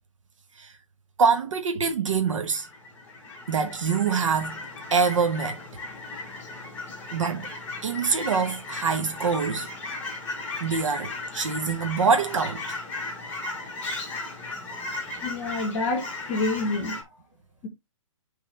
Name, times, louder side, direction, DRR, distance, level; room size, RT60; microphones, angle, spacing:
voice 1, 1.2-2.7 3.5-4.6 4.9-5.6 7.1-7.5 7.8-9.7 10.6-12.8, right 5 dB, 70° right, 1.3 m, -25 dB
Fowl / Chirp tweet, 2.3-17.0, left 2 dB, 10° left, 1.8 m, -36 dB
voice 2, 15.2-17.0, left 2 dB, 30° left, 1.4 m, -28 dB
8.8 x 3.9 x 3.4 m
hypercardioid pair, 165°, 17 cm